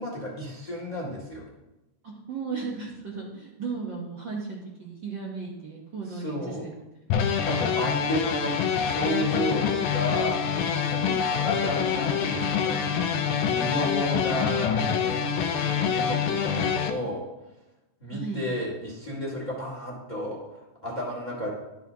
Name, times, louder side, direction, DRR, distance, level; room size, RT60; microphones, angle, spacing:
voice 1, 0.0-1.4 6.1-6.6 7.4-10.4 10.9-12.9 13.5-15.2 15.6-17.2 18.0-21.5, equal, 20° left, -3 dB, 1.5 m, -32 dB
voice 2, 2.0-6.8 9.2-9.6 11.1-11.3 18.1-18.4, right 4 dB, 85° right, -4 dB, 0.9 m, -36 dB
sound 1, 7.1-16.9, left 7 dB, 80° left, 2.2 m, -26 dB
12.0 x 7.0 x 2.8 m, 1.0 s
omnidirectional pair, 3.8 m